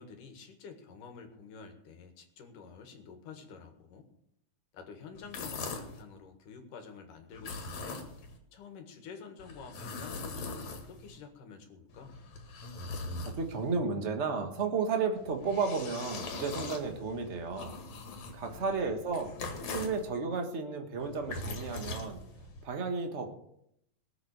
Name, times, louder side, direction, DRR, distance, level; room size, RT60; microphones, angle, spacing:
voice 1, 0.0-4.1 4.7-8.1 8.5-12.2 18.4-18.9, left 5 dB, 85° left, 5 dB, 3.4 m, -49 dB
sound 1, 5.2-6.0 7.3-8.4 9.4-11.2 11.9-13.7 15.1-20.0 21.0-22.6, left 3 dB, 65° left, 3.4 m, -41 dB
voice 2, 13.4-17.8 18.3-19.3 19.7-22.2 22.6-23.3, right 4 dB, 35° right, 5 dB, 1.2 m, -33 dB
19.5 x 7.9 x 6.6 m, 0.75 s
omnidirectional pair, 3.6 m